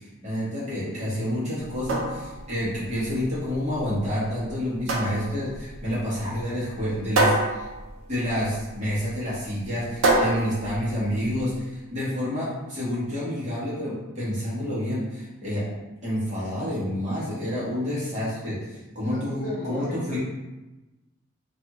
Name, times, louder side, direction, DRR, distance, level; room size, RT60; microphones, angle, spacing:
voice 1, 0.0-7.7 8.1-15.7 16.0-20.2, equal, 30° right, -9 dB, 1.0 m, -29 dB
sound 1, 1.6-11.6, right 2 dB, 65° right, 0.5 m, -28 dB
voice 2, 19.0-20.2, left 1 dB, 50° left, -7 dB, 0.9 m, -35 dB
2.6 x 2.3 x 2.9 m, 1.1 s
head